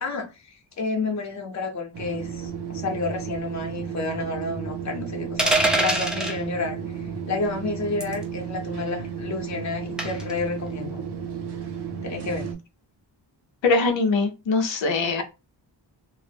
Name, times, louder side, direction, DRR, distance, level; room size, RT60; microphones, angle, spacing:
voice 1, 0.0-11.0 12.0-12.5, left 3 dB, 40° left, 0.7 m, -30 dB
sound 1, 1.9-12.5, right 7 dB, 65° right, 0.6 m, -33 dB
sound 2, 5.4-6.4 8.0-8.2 10.0-10.3, right 1 dB, ahead, 0.4 m, -23 dB
voice 2, 13.6-15.2, left 3 dB, 90° left, 0.6 m, -22 dB
2.1 x 2.0 x 3.2 m
wide cardioid pair, 130°, 44 cm